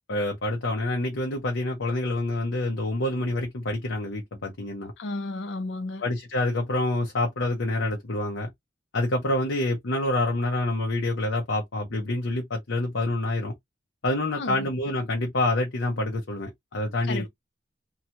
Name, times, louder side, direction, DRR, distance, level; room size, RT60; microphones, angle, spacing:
voice 1, 0.0-4.9 6.0-8.5 8.9-13.5 14.0-17.3, left 2 dB, 90° left, 0.9 m, -27 dB
voice 2, 5.0-6.0 14.3-14.7 17.0-17.3, left 2 dB, 65° left, 0.5 m, -33 dB
2.8 x 2.3 x 2.8 m
head